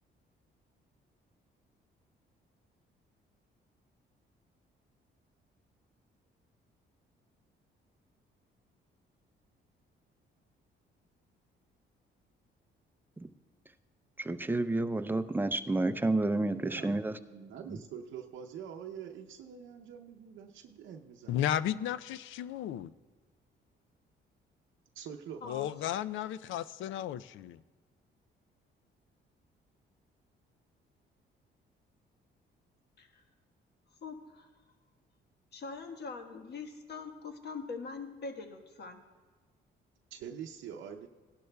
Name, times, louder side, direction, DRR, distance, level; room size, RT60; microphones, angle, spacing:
voice 1, 14.2-17.2 17.7-17.8, right 2 dB, 10° right, 0.5 m, -30 dB
voice 2, 16.5-17.0 17.3-21.4 24.9-25.4 40.1-41.1, right 8 dB, 75° right, 0.7 m, -45 dB
voice 3, 21.3-22.9 25.4-27.6, left 11 dB, 80° left, 0.4 m, -34 dB
voice 4, 34.0-34.5 35.5-39.0, left 4 dB, 55° left, 1.3 m, -43 dB
17.0 x 12.0 x 2.3 m
cardioid pair, 90°, 20 cm